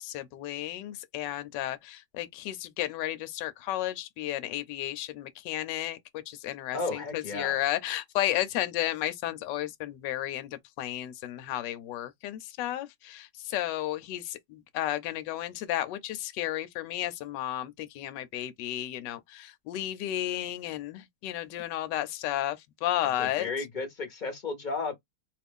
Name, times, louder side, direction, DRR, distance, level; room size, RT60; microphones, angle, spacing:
voice 1, 0.0-23.5, left 13 dB, 80° left, 1.2 m, -33 dB
voice 2, 6.7-7.6 23.2-24.9, left 3 dB, 35° left, 0.9 m, -33 dB
2.9 x 2.4 x 3.5 m
omnidirectional pair, 1.9 m